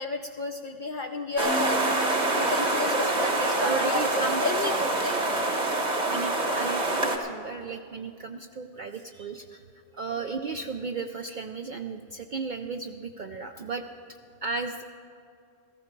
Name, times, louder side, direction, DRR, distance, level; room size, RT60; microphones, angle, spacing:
voice 1, 0.0-5.2, left 3 dB, 55° left, 5 dB, 0.6 m, -32 dB
Keyboard (musical), 1.4-3.2, right 4 dB, 90° left, 0.9 m, -37 dB
sound 1, 1.4-7.2, right 2 dB, 40° right, 1.3 m, -26 dB
voice 2, 2.9-4.4 4.8-4.9 6.1-9.6 9.9-13.8 14.4-14.8, right 4 dB, 55° right, 5 dB, 0.6 m, -34 dB
15.0 x 14.5 x 4.5 m, 2.4 s
omnidirectional pair, 1.2 m